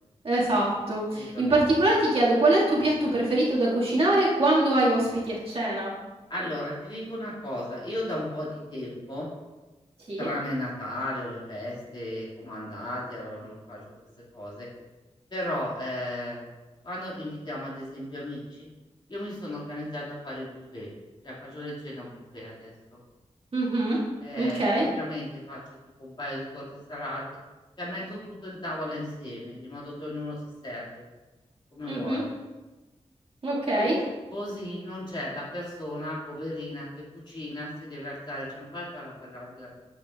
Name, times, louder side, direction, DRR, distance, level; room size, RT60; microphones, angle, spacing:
voice 1, 0.2-5.9 10.1-10.3 23.5-24.0 24.4-24.9 31.9-32.2 33.4-34.0, right 1 dB, 55° right, -7 dB, 2.0 m, -23 dB
voice 2, 1.1-1.6 6.3-9.3 10.2-14.0 14.3-14.7 15.3-16.4 16.8-18.7 19.1-20.9 21.2-23.0 24.2-25.6 26.0-27.3 27.8-30.4 30.6-31.0 31.7-32.3 33.8-33.9 34.3-39.7, left 1 dB, 40° left, -6 dB, 2.2 m, -35 dB
8.5 x 5.5 x 2.4 m, 1.2 s
wide cardioid pair, 100°, 12 cm